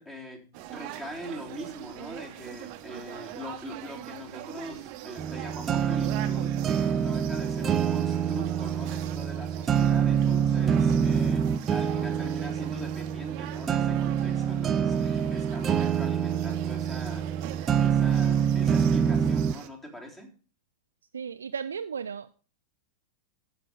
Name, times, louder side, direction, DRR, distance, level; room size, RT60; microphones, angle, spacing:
voice 1, 0.0-17.3 17.8-20.3, equal, 15° left, 1 dB, 3.5 m, -42 dB
sound 1, 0.5-19.7, right 13 dB, 40° right, 1.1 m, -43 dB
sound 2, 5.2-19.5, right 8 dB, 25° right, 0.6 m, -26 dB
voice 2, 21.1-22.3, right 6 dB, 70° right, 8 dB, 0.5 m, -35 dB
15.0 x 6.0 x 5.1 m, 0.39 s
figure-of-eight pair, 90°, 0 cm